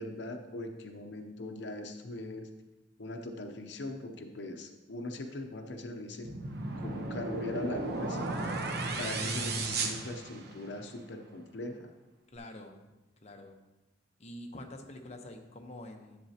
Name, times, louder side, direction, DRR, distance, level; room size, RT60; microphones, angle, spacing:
voice 1, 0.0-2.5 3.0-6.3 6.8-8.5 9.0-11.9, left 2 dB, 70° left, 5 dB, 0.7 m, -40 dB
sound 1, 6.2-10.8, right 3 dB, 60° right, 0.9 m, -35 dB
voice 2, 12.3-12.8 13.2-13.6 14.2-16.2, left 1 dB, 40° left, 4 dB, 0.9 m, -46 dB
11.0 x 7.3 x 2.8 m, 1.1 s
head